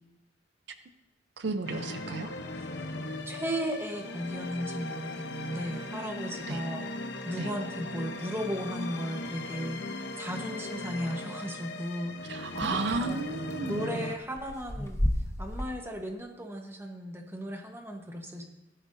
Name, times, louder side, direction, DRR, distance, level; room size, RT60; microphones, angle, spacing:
voice 1, 1.4-2.3 6.5-6.6 7.4-7.5 12.3-13.9, right 3 dB, 65° right, 9 dB, 0.5 m, -33 dB
sound 1, 1.6-14.2, left 2 dB, 65° left, 0.8 m, -38 dB
voice 2, 3.3-6.9 7.2-12.6 12.9-13.3 13.6-15.0 15.4-18.4, equal, 15° right, 3 dB, 1.1 m, -36 dB
sound 2, 12.6-13.7 14.3-15.6, left 1 dB, 15° left, 0.7 m, -31 dB
14.5 x 12.0 x 2.6 m, 0.94 s
head